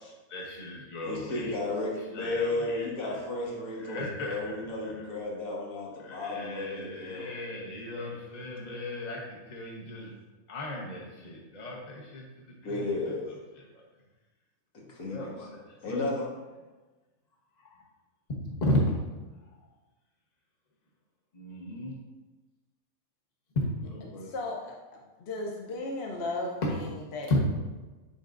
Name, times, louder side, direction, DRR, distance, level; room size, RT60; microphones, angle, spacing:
voice 1, 0.3-1.5 2.1-3.2 3.8-4.5 4.8-5.0 6.0-10.1 10.5-13.0 15.1-15.6 15.9-16.0 17.6-17.8 18.6-18.9 21.3-22.0 23.8-24.3 26.6-26.7 27.3-27.4, left 1 dB, 35° left, -2 dB, 1.1 m, -34 dB
voice 2, 1.0-7.4 7.9-8.1 12.6-13.3 14.9-15.5 15.8-16.3, left 2 dB, 80° left, -4 dB, 1.8 m, -34 dB
voice 3, 24.2-27.4, left 2 dB, 55° left, 0 dB, 0.9 m, -36 dB
9.8 x 4.0 x 2.5 m, 1.2 s
omnidirectional pair, 1.5 m